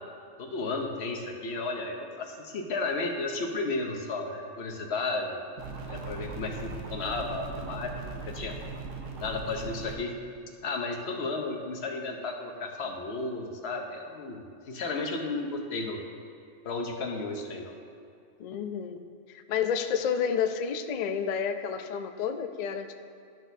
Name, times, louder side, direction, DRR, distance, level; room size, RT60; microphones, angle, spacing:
voice 1, 0.4-5.4 5.9-7.9 8.3-8.5 9.2-10.1 10.6-16.0 16.6-17.7, left 3 dB, 60° left, 3 dB, 1.0 m, -33 dB
sound 1, 5.6-10.0, right 4 dB, 80° right, 1.2 m, -39 dB
voice 2, 18.4-19.0 19.3-22.9, left 7 dB, 85° left, 8 dB, 0.3 m, -30 dB
12.0 x 6.0 x 2.7 m, 2.6 s
omnidirectional pair, 1.3 m